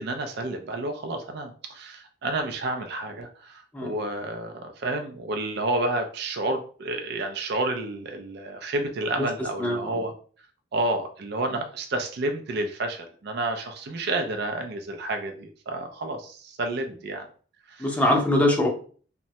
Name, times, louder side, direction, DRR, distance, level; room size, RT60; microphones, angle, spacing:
voice 1, 0.0-10.1 10.7-17.3 17.7-17.9, right 2 dB, 55° right, 5 dB, 0.4 m, -30 dB
voice 2, 9.6-10.0 17.8-18.7, left 1 dB, 10° left, 0 dB, 0.6 m, -23 dB
3.1 x 2.1 x 2.7 m, 0.42 s
head